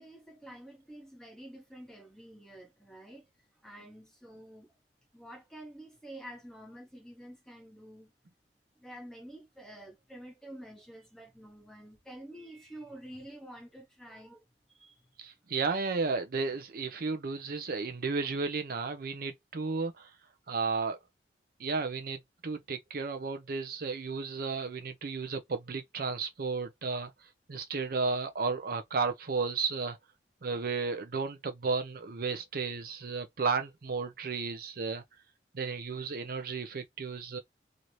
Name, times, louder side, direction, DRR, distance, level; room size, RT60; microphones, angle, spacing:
voice 1, 0.0-3.2 3.6-4.7 5.1-8.1 8.8-14.4 14.7-14.9, right 1 dB, 5° left, 0.9 m, -49 dB
voice 2, 15.2-20.1 20.5-21.0 21.6-27.1 27.5-30.0 30.4-35.0 35.5-37.4, right 4 dB, 55° right, 0.5 m, -33 dB
2.8 x 2.5 x 3.0 m
head